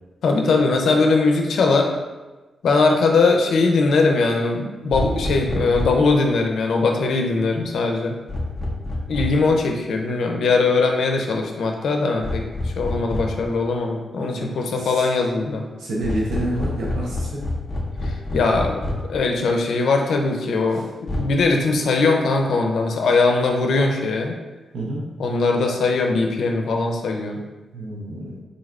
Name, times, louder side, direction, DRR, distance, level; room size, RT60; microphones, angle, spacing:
voice 1, 0.2-1.9 2.6-8.2 9.1-15.6 18.1-18.8 19.1-20.9 21.1-24.3 25.2-27.4, left 3 dB, 80° left, 2 dB, 0.5 m, -20 dB
sound 1, 4.9-6.1 8.3-9.5 12.2-13.5 16.0-19.2 21.1-21.2, left 1 dB, 30° left, 0.6 m, -27 dB
voice 2, 14.2-15.1 15.8-17.4 24.7-25.0 27.7-28.4, right 1 dB, 90° right, -4 dB, 0.6 m, -29 dB
3.9 x 3.2 x 2.4 m, 1.2 s
wide cardioid pair, 115°, 0 cm